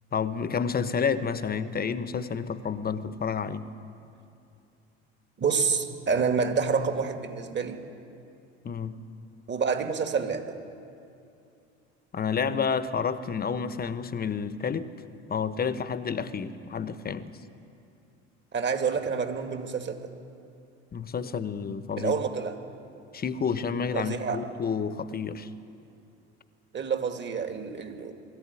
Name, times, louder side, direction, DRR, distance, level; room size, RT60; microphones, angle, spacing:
voice 1, 0.1-3.7 8.6-9.0 12.1-14.9 15.3-17.3 20.9-22.1 23.1-25.5, left 6 dB, 30° left, 12 dB, 1.1 m, -30 dB
voice 2, 5.4-7.8 9.5-10.6 18.5-20.1 22.0-22.5 23.9-24.5 26.7-28.1, right 5 dB, 35° right, 6 dB, 2.2 m, -28 dB
21.0 x 14.0 x 9.8 m, 2.6 s
hypercardioid pair, 75°, 33 cm